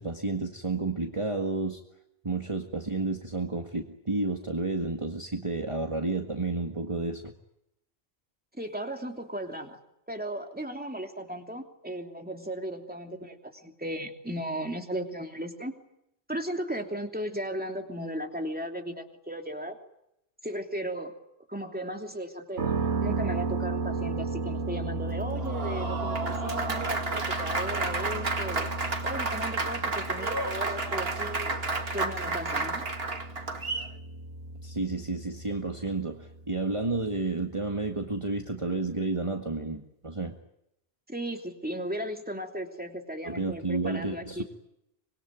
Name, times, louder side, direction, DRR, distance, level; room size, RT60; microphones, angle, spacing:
voice 1, 0.0-1.8 2.2-7.3 34.6-40.3 43.2-44.4, right 3 dB, 30° right, 4 dB, 1.8 m, -31 dB
voice 2, 8.5-9.8 10.1-15.7 16.3-19.8 20.4-21.1 21.5-28.7 29.0-31.5 31.9-32.9 41.1-44.4, right 1 dB, 10° right, 4 dB, 3.0 m, -36 dB
sound 1, 22.6-38.4, right 3 dB, 80° right, 2.2 m, -35 dB
Applause, 25.2-33.9, right 3 dB, 65° right, 2.4 m, -31 dB
25.5 x 22.5 x 9.3 m, 0.82 s
omnidirectional pair, 1.1 m